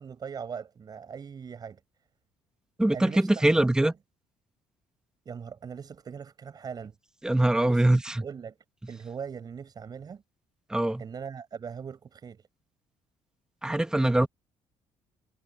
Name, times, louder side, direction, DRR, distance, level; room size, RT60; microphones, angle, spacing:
voice 1, 0.0-1.8 2.9-3.9 5.2-7.0 7.6-7.9 8.2-8.6 8.9-10.2 11.0-12.4, right 6 dB, 40° right, 6.4 m, -40 dB
voice 2, 2.8-3.9 7.2-8.2 10.7-11.0 13.6-14.3, right 1 dB, 5° right, 1.8 m, -23 dB
cardioid pair, 110°, 11 cm